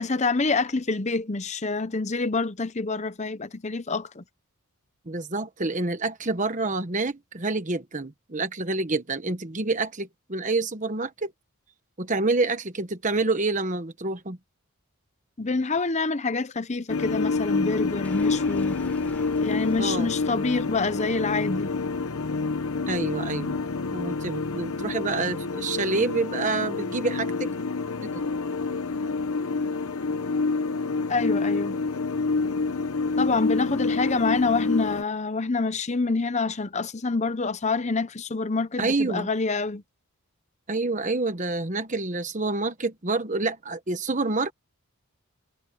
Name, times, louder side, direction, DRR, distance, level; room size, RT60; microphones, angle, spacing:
voice 1, 0.0-4.2 15.4-18.8 19.4-21.7 31.1-31.8 33.2-39.8, left 3 dB, 30° left, 0.7 m, -27 dB
voice 2, 5.1-11.3 12.0-14.4 19.8-20.1 22.9-23.6 23.9-27.5 28.0-28.2 38.8-39.3 40.7-44.5, right 3 dB, 35° right, 1.2 m, -27 dB
sound 1, 16.9-35.0, left 3 dB, 75° left, 0.9 m, -28 dB
sound 2, 18.0-22.8, left 1 dB, 5° left, 6.2 m, -48 dB
head